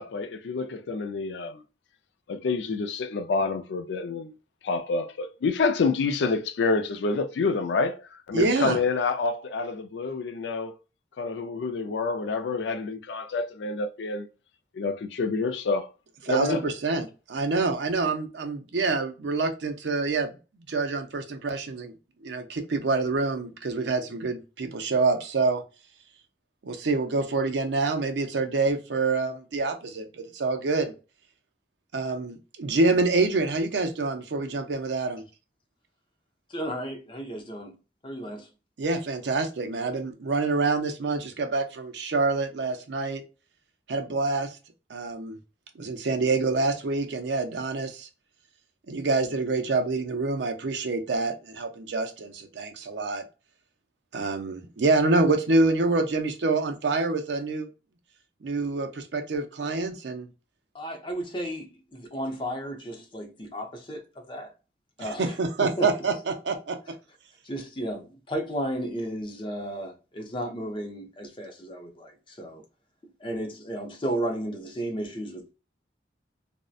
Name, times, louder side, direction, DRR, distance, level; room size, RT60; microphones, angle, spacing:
voice 1, 0.0-1.6 2.3-4.3 4.6-10.8 11.2-14.3 14.7-15.9 16.3-16.6, left 4 dB, 80° left, 0.4 m, -28 dB
voice 2, 8.3-8.8 16.2-20.4 20.7-21.9 22.2-25.6 26.6-30.1 30.3-30.9 31.9-35.2 38.8-43.2 43.9-44.6 44.9-45.3 45.8-48.1 48.9-53.2 54.1-57.7 58.4-60.3 65.0-66.8, right 3 dB, 80° right, 0.5 m, -26 dB
voice 3, 36.5-37.8 38.0-38.5 60.7-64.5 65.0-65.9 67.4-72.6 73.2-75.5, right 1 dB, 25° left, 0.5 m, -34 dB
2.6 x 2.1 x 2.3 m
head